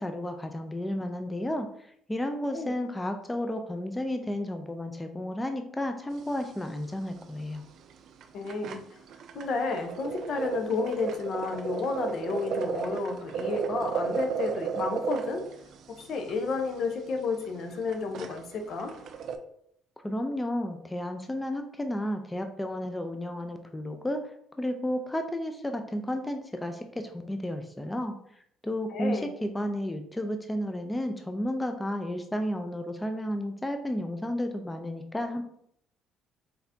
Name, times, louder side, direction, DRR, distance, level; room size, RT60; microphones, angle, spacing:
voice 1, 0.0-7.6 20.0-24.3 24.6-28.2 28.6-35.4, left 1 dB, 15° left, 6 dB, 0.5 m, -32 dB
sound 1, 6.1-6.6 6.9-7.0 7.2-7.4 7.9-8.0 8.2-19.4, right 6 dB, 65° right, 0.4 m, -34 dB
voice 2, 8.3-8.8 9.3-15.4 16.0-18.9 28.9-29.3, left 4 dB, 60° left, 5 dB, 0.7 m, -31 dB
4.0 x 4.0 x 2.7 m, 0.69 s
hypercardioid pair, 60°, 0 cm